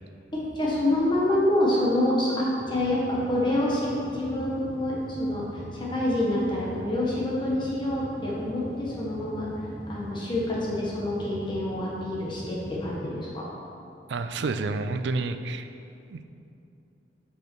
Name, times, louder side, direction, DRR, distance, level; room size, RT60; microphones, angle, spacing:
voice 1, 0.3-9.5 9.9-13.4, left 1 dB, 25° left, -5 dB, 1.1 m, -27 dB
sound 1, 2.6-13.0, equal, 25° right, 1.3 m, -42 dB
voice 2, 14.1-15.7 16.1-16.3, right 3 dB, 65° right, 9 dB, 0.4 m, -29 dB
8.0 x 5.0 x 4.5 m, 2.7 s
head